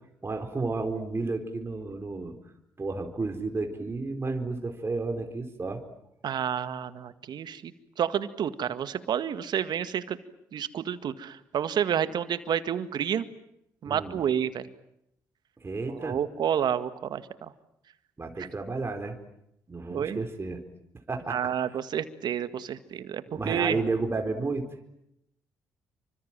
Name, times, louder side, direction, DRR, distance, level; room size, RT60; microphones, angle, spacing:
voice 1, 0.2-2.3 2.8-5.9 13.8-14.2 15.6-16.2 18.2-19.2 19.7-20.6 21.1-21.5 23.3-24.7, right 3 dB, 30° right, 4 dB, 4.4 m, -32 dB
voice 2, 6.2-10.2 10.5-13.2 13.8-14.7 15.9-17.5 19.9-20.2 21.3-23.8, right 9 dB, 60° right, 12 dB, 1.8 m, -30 dB
28.0 x 25.0 x 7.5 m, 0.79 s
hypercardioid pair, 55°, 8 cm